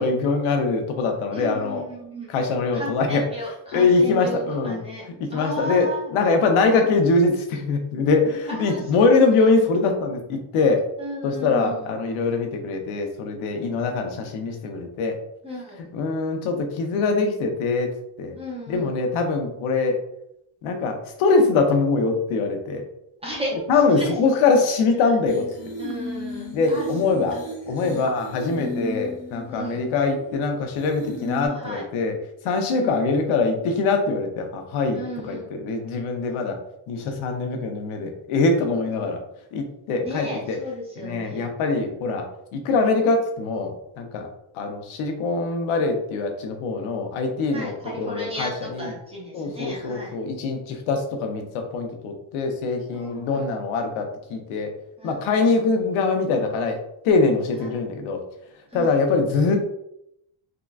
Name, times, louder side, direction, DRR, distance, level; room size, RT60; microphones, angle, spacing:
voice 1, 0.0-1.8 2.3-3.3 3.7-4.8 5.3-10.9 11.2-15.2 15.9-17.9 18.2-18.4 18.7-20.0 20.6-22.8 23.7-25.4 26.5-27.3 27.7-32.1 32.4-36.6 36.9-39.2 39.5-40.6 41.0-44.3 44.5-48.9 49.3-54.7 55.0-58.2 58.7-59.6, left 4 dB, 85° left, 4 dB, 0.7 m, -23 dB
voice 2, 1.3-2.3 2.7-5.0 5.3-6.0 6.7-6.8 8.5-9.5 11.0-12.0 15.4-15.8 18.4-19.0 23.2-23.6 23.9-24.1 25.0-25.2 25.8-28.1 29.4-29.8 31.4-31.8 32.7-33.0 34.9-35.5 36.2-36.5 39.0-39.1 40.0-41.5 47.5-50.1 52.9-53.5 55.0-55.3 57.6-57.8 58.7-59.0, right 1 dB, 15° right, -4 dB, 0.5 m, -35 dB
sound 1, 25.3-30.4 30.8-31.5, left 1 dB, 40° left, 0.8 m, -34 dB
3.7 x 2.2 x 2.3 m, 0.78 s
cardioid pair, 165°, 48 cm